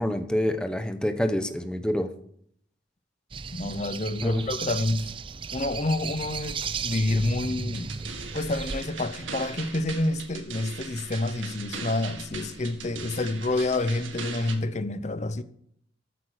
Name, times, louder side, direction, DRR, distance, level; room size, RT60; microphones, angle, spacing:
voice 1, 0.0-2.1 4.2-4.4, left 1 dB, 5° left, 0.9 m, -27 dB
sound 1, 3.3-8.8, right 5 dB, 25° right, 0.4 m, -35 dB
voice 2, 3.5-5.1 5.5-7.9 8.3-15.4, left 2 dB, 35° left, 0.8 m, -28 dB
sound 2, 7.7-14.6, right 4 dB, 80° right, 2.1 m, -40 dB
13.5 x 8.3 x 6.5 m
head